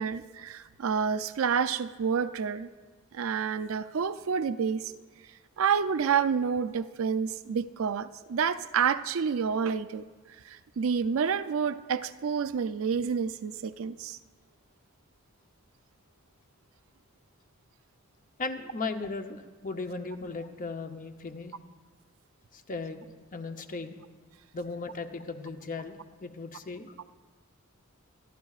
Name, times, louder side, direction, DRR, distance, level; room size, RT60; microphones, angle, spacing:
voice 1, 0.0-2.7 3.1-4.9 5.6-10.0 10.4-14.2 27.0-27.1, right 6 dB, 75° right, 13 dB, 0.4 m, -29 dB
voice 2, 18.4-21.5 22.5-24.0 24.5-27.0, left 3 dB, 40° left, 7 dB, 0.7 m, -37 dB
26.5 x 11.5 x 2.4 m, 1.4 s
head